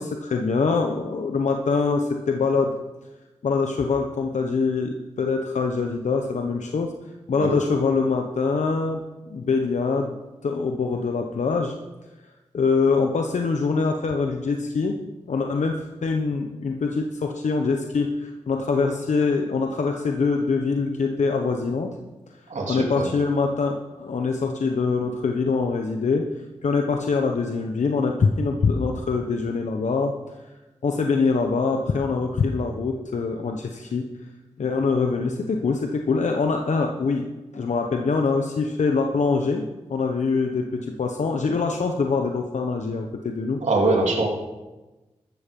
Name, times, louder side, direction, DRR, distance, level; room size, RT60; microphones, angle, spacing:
voice 1, 0.0-2.7 3.4-6.9 7.3-9.0 9.3-10.1 10.4-11.8 12.5-15.0 15.3-22.0 22.7-26.3 26.6-30.1 30.8-34.1 34.6-37.3 37.5-39.6 39.9-43.6, left 4 dB, 80° left, 3 dB, 1.1 m, -24 dB
voice 2, 22.5-23.1 43.6-44.3, right 2 dB, 80° right, 0 dB, 3.1 m, -22 dB
13.5 x 13.5 x 5.4 m, 1.1 s
cardioid pair, 40°, 12 cm